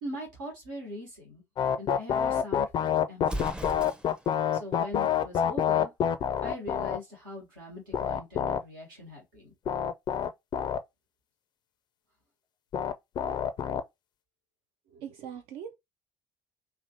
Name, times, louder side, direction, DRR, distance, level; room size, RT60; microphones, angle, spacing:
voice 1, 0.0-1.4 1.8-3.6 4.5-5.9 6.4-9.5, left 1 dB, 85° right, 1.2 m, -41 dB
sound 1, 1.6-7.0 7.9-8.6 9.7-10.8 12.7-13.8, left 9 dB, 45° left, 0.4 m, -27 dB
Explosion, 3.2-4.4, right 1 dB, 10° right, 0.5 m, -37 dB
voice 2, 14.9-15.7, right 8 dB, 65° right, 0.4 m, -41 dB
3.1 x 2.5 x 2.7 m
hypercardioid pair, 55°, 11 cm